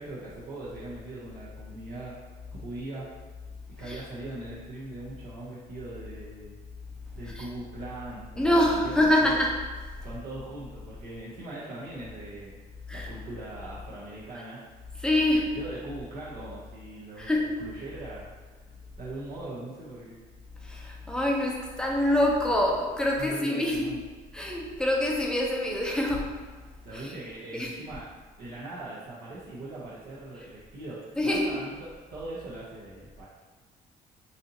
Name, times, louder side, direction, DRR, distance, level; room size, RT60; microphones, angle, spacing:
voice 1, 0.0-2.2 2.5-3.1 3.8-6.5 7.1-9.5 10.0-12.6 12.9-14.6 15.3-18.3 19.0-20.2 23.2-24.0 26.8-28.1 28.4-31.7 32.1-33.3, right 2 dB, 60° right, -8 dB, 0.8 m, -40 dB
voice 2, 8.4-9.6 12.9-13.1 15.0-15.5 17.2-17.5 20.6-23.9 24.3-26.3 26.9-27.1 27.5-27.8 31.2-31.6, left 1 dB, 5° left, -2 dB, 0.6 m, -25 dB
4.2 x 2.7 x 2.6 m, 1.4 s
cardioid pair, 110°, 17 cm